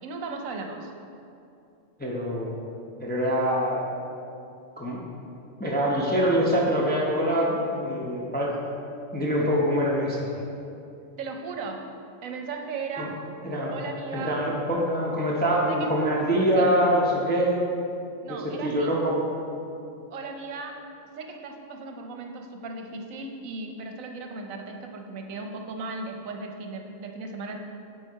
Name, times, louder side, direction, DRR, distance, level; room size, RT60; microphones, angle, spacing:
voice 1, 0.0-0.9 11.2-11.9 12.2-13.2 13.7-14.4 15.7-15.9 16.5-16.7 18.2-18.9 20.1-20.8 21.2-27.6, right 3 dB, 80° right, 3 dB, 1.1 m, -36 dB
voice 2, 2.0-2.6 3.0-3.8 4.8-5.0 5.6-8.6 9.1-10.3 13.0-13.1 13.4-13.8 14.1-17.6 18.3-19.1, equal, 10° left, -4 dB, 0.5 m, -24 dB
6.5 x 4.5 x 4.6 m, 2.6 s
omnidirectional pair, 1.4 m